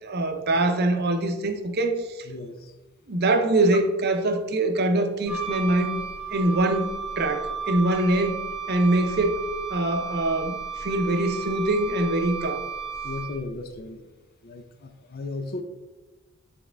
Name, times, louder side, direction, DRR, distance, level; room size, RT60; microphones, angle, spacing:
voice 1, 0.0-2.3 3.1-6.0 6.3-8.4 8.7-9.4 9.7-12.7, right 2 dB, 50° right, 7 dB, 0.7 m, -24 dB
voice 2, 2.3-2.7 13.0-14.0 14.4-15.6, left 3 dB, 45° left, 7 dB, 0.5 m, -35 dB
Wind instrument woodwind instrument, 5.3-13.6, right 6 dB, 5° right, 1.4 m, -34 dB
8.7 x 3.5 x 3.4 m, 1.1 s
head